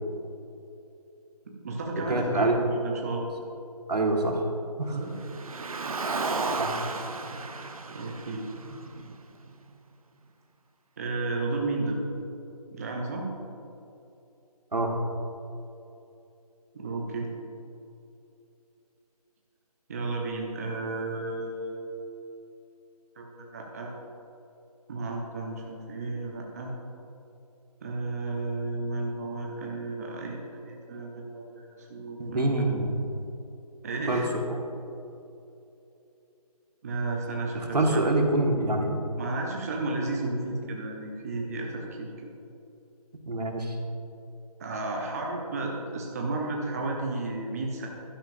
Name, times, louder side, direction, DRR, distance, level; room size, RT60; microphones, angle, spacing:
voice 1, 1.5-3.2 4.9-5.2 7.9-8.5 11.0-12.0 12.7-13.3 16.7-17.3 19.9-21.8 23.2-23.9 24.9-26.7 27.8-32.7 33.8-34.3 36.8-38.0 39.2-42.1 44.6-47.9, right 2 dB, 25° right, 0 dB, 0.8 m, -33 dB
voice 2, 2.0-2.7 3.9-4.4 4.8-5.0 6.6-6.7 14.7-14.9 32.2-33.1 34.1-34.2 37.5-39.0 43.3-43.7, right 2 dB, 85° right, 2 dB, 1.6 m, -25 dB
Car, 5.1-9.5, right 3 dB, 60° right, 0.8 m, -33 dB
11.5 x 10.0 x 2.6 m, 2.8 s
figure-of-eight pair, 160°, 20 cm